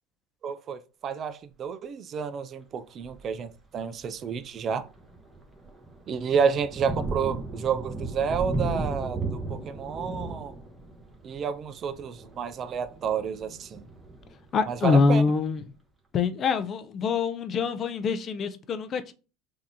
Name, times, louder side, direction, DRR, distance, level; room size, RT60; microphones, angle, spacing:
voice 1, 0.4-4.9 6.1-10.5 11.2-13.8 14.7-15.2, right 6 dB, 35° right, 0.4 m, -30 dB
Thunder, 3.0-3.3 3.9-4.0 4.5-15.1, right 2 dB, 5° right, 1.0 m, -36 dB
voice 2, 14.5-15.6 16.1-19.1, left 5 dB, 35° left, 0.4 m, -25 dB
5.1 x 2.6 x 2.8 m
supercardioid pair, 120°, 0 cm